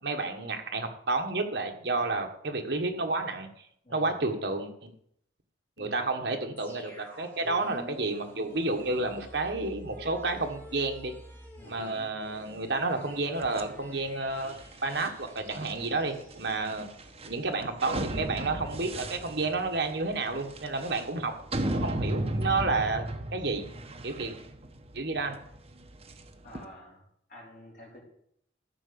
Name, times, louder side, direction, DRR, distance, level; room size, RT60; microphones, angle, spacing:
voice 1, 0.0-3.5 3.9-4.9 5.8-11.1 11.7-14.6 14.8-16.9 17.2-21.3 21.7-23.1 23.3-23.6 24.0-24.3 24.9-25.3, right 3 dB, 60° right, 4 dB, 1.5 m, -30 dB
sound 1, 6.6-17.4 17.7-17.8, equal, 10° left, 1.9 m, -49 dB
sound 2, 13.4-26.6, right 1 dB, 30° right, 1.1 m, -36 dB
voice 2, 20.7-21.1 24.2-24.4 26.4-27.0 27.3-28.0, left 1 dB, 45° left, -3 dB, 4.1 m, -50 dB
13.5 x 5.8 x 6.9 m, 0.69 s
head